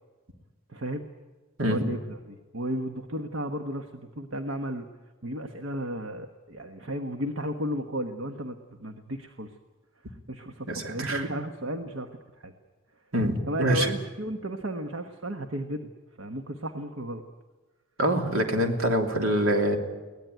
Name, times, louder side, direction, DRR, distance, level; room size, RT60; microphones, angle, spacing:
voice 1, 0.7-1.1 1.6-4.9 5.2-9.5 10.3-12.1 12.4-12.5 13.5-15.9 16.2-17.2, right 1 dB, 65° right, 5 dB, 1.2 m, -34 dB
voice 2, 10.7-11.2 13.1-13.9 18.0-19.8, right 1 dB, 80° right, 3 dB, 3.1 m, -25 dB
23.0 x 18.5 x 9.3 m, 1.3 s
head